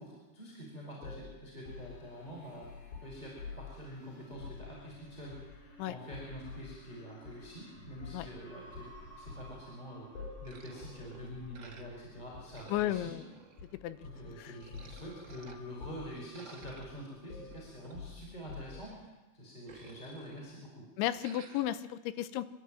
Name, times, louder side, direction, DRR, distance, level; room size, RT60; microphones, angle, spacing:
voice 1, 0.0-2.7 3.0-13.2 14.0-20.8, equal, 10° left, -3 dB, 5.3 m, -46 dB
sound 1, 1.0-3.8 4.3-4.7 5.3-5.7 6.1-6.7 7.2-7.4 8.0-8.3 8.7-9.5 10.1-10.5 10.8-11.0 11.3-11.6 12.3-13.0 13.6-14.3 14.7-15.0 15.3-15.5 15.8-16.2 16.6-16.9 17.3-19.0, left 5 dB, 60° left, 6.7 m, -47 dB
sound 2, 1.6-18.2, left 1 dB, 40° left, 2.8 m, -57 dB
sound 3, 10.4-12.1 12.3-14.0 14.4-15.6 16.1-19.1 19.4-20.7 21.0-21.8, right 5 dB, 70° right, 1.1 m, -56 dB
voice 2, 12.7-13.2 13.8-14.0 14.4-14.5 21.0-22.5, left 13 dB, 80° left, 14 dB, 3.2 m, -33 dB
26.5 x 12.0 x 9.1 m, 1.1 s
omnidirectional pair, 5.5 m